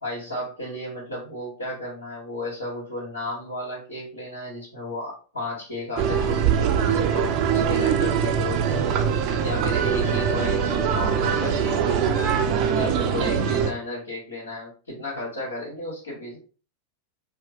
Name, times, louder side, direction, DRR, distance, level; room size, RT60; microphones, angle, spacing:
voice 1, 0.0-8.8 9.4-12.3 12.7-16.4, left 1 dB, 75° left, -7 dB, 1.4 m, -33 dB
sound 1, 6.0-13.7, right 7 dB, 40° right, 0.5 m, -22 dB
4.2 x 2.1 x 3.0 m, 0.37 s
figure-of-eight pair, 90°, 0 cm